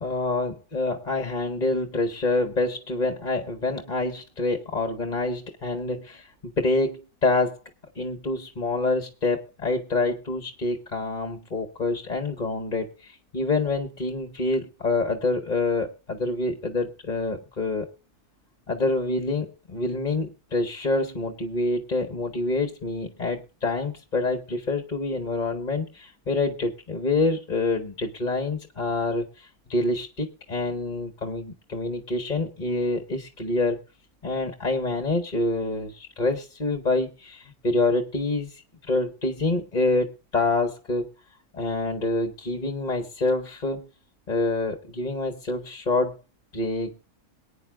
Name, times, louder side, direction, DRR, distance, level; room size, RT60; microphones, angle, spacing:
voice 1, 0.0-7.6 7.9-17.9 18.7-33.8 34.2-38.5 38.8-41.1 41.5-43.9 44.3-46.2 46.5-47.0, left 2 dB, 30° left, 5 dB, 1.7 m, -27 dB
23.5 x 9.5 x 2.5 m, 0.30 s
omnidirectional pair, 1.6 m